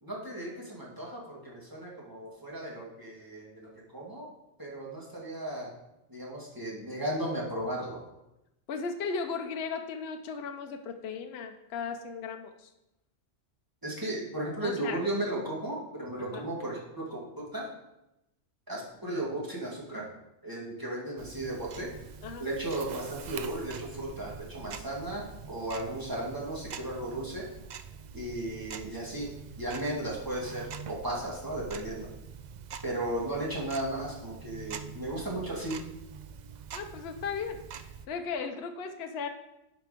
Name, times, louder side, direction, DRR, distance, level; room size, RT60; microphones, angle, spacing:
voice 1, 0.0-4.3 4.6-5.7 6.1-8.0 13.8-17.7 18.7-20.1 20.4-21.9 22.4-27.5 28.1-32.1 32.8-35.8, right 1 dB, 15° right, -5 dB, 2.2 m, -35 dB
voice 2, 8.7-12.7 14.6-15.0 16.3-16.5 22.2-22.5 36.7-39.3, left 5 dB, 60° left, 5 dB, 0.9 m, -36 dB
Tick-tock, 21.2-38.1, right 6 dB, 65° right, 0.4 m, -45 dB
9.3 x 5.1 x 5.0 m, 0.90 s
omnidirectional pair, 1.3 m